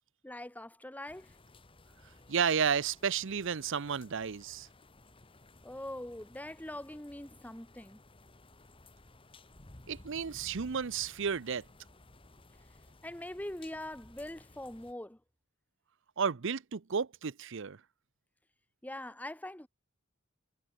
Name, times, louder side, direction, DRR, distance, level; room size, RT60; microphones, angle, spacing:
voice 1, 0.2-1.4 5.6-8.0 13.0-15.2 18.8-19.7, left 1 dB, 10° left, 1.1 m, -43 dB
sound 1, 1.1-14.9, left 2 dB, 25° left, 1.6 m, -57 dB
voice 2, 2.3-4.7 9.9-11.6 16.2-17.8, right 6 dB, 65° right, 0.7 m, -32 dB
head